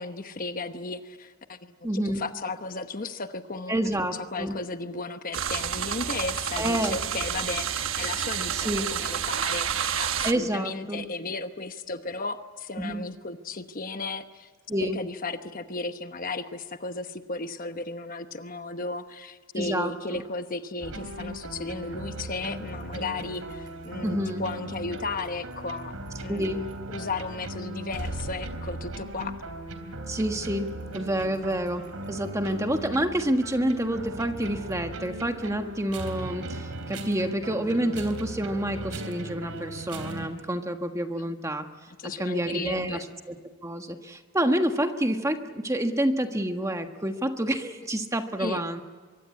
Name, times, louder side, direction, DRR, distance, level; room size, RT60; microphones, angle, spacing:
voice 1, 0.0-3.8 4.3-14.5 14.8-25.9 26.2-26.6 26.9-29.3 42.0-43.0 48.4-48.6, left 3 dB, 40° left, 8 dB, 1.0 m, -35 dB
voice 2, 1.8-2.2 3.7-4.6 6.6-7.0 8.5-8.9 10.2-11.1 12.8-13.0 14.7-15.0 19.5-20.2 24.0-24.4 26.3-26.7 30.1-41.7 42.2-43.4 43.6-48.8, right 1 dB, 15° right, 6 dB, 1.4 m, -28 dB
sound 1, 5.3-10.3, right 8 dB, 65° right, 1.2 m, -29 dB
sound 2, 20.8-40.3, right 1 dB, 90° right, 3.5 m, -38 dB
24.0 x 23.5 x 8.5 m, 1.5 s
head